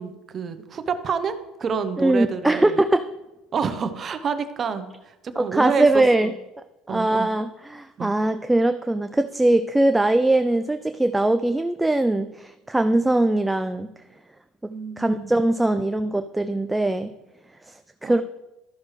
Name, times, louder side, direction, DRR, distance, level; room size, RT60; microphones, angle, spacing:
voice 1, 0.0-2.8 3.5-6.3 6.9-7.3 8.0-8.2 14.7-15.3 18.0-18.2, right 6 dB, 40° right, 10 dB, 0.8 m, -28 dB
voice 2, 2.0-3.1 5.4-6.3 6.9-13.9 14.6-17.1 17.7-18.2, right 2 dB, 10° right, 9 dB, 0.3 m, -21 dB
13.0 x 6.0 x 3.2 m, 0.99 s
supercardioid pair, 95°, 0 cm